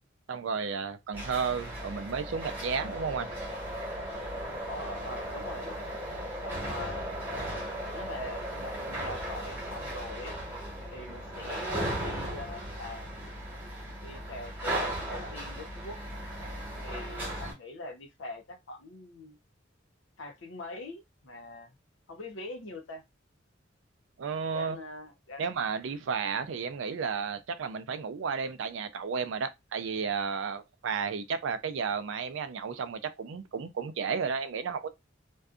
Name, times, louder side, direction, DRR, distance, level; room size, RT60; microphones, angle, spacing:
voice 1, 0.3-3.3 24.2-24.8 25.4-34.9, right 5 dB, 70° right, 0.4 m, -33 dB
sound 1, 1.1-17.5, right 1 dB, 10° right, 1.1 m, -36 dB
voice 2, 4.7-5.8 6.4-7.2 7.9-10.4 10.9-13.2 14.0-16.0 16.8-19.4 20.2-21.7 22.1-23.0 24.5-25.5, left 2 dB, 75° left, 0.6 m, -43 dB
2.6 x 2.3 x 2.4 m
head